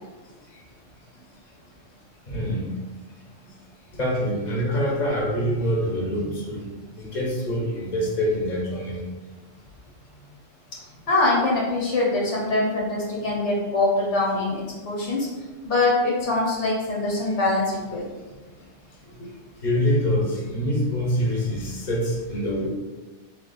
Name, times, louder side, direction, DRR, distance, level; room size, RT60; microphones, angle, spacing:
voice 1, 2.3-2.7 3.9-6.6 7.0-9.0 19.6-22.7, equal, 40° left, -3 dB, 1.0 m, -25 dB
voice 2, 11.1-15.3 15.6-18.1, left 2 dB, 80° left, -3 dB, 1.3 m, -23 dB
3.3 x 2.8 x 4.0 m, 1.2 s
omnidirectional pair, 1.2 m